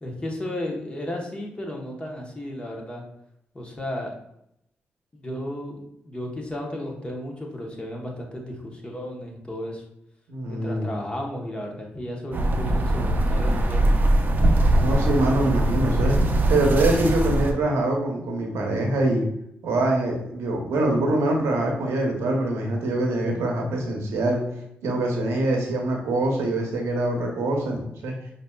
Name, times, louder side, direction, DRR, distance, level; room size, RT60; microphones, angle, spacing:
voice 1, 0.0-3.0 3.5-4.1 5.1-9.8 10.5-13.8, left 1 dB, 25° left, 0 dB, 1.0 m, -34 dB
voice 2, 10.3-10.9 14.8-16.2 16.5-19.2 19.6-24.4 24.8-28.1, right 2 dB, 90° right, 1 dB, 0.8 m, -24 dB
sound 1, 12.3-17.5, right 1 dB, 45° right, 0.6 m, -21 dB
5.1 x 2.7 x 2.3 m, 0.77 s
cardioid pair, 65°, 4 cm